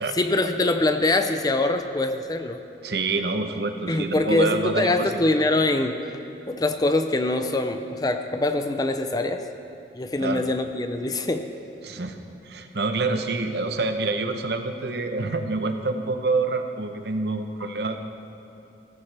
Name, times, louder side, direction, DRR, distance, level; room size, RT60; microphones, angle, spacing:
voice 1, 0.1-2.6 3.9-6.0 6.5-9.4 9.9-11.5, left 2 dB, 20° left, 7 dB, 0.5 m, -24 dB
voice 2, 2.8-5.1 10.2-10.5 11.8-12.2 12.4-18.0, right 3 dB, 70° right, 6 dB, 0.9 m, -27 dB
15.5 x 14.0 x 3.4 m, 2.8 s
head